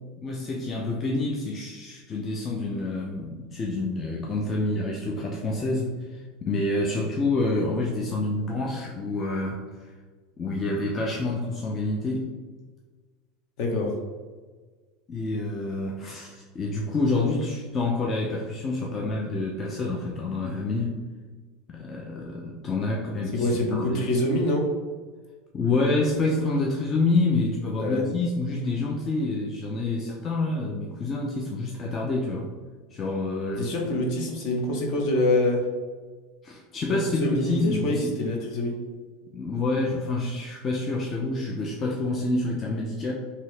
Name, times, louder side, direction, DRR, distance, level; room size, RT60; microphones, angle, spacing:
voice 1, 0.2-9.9 10.4-12.3 15.1-21.0 21.7-24.0 25.5-32.5 32.9-33.7 36.4-38.2 39.3-43.1, left 2 dB, 25° left, -1 dB, 0.4 m, -28 dB
voice 2, 13.6-13.9 23.3-24.7 27.8-28.0 33.6-35.6 36.9-38.8, left 1 dB, 55° left, 0 dB, 0.8 m, -25 dB
2.8 x 2.8 x 3.2 m, 1.4 s
supercardioid pair, 135°, 0 cm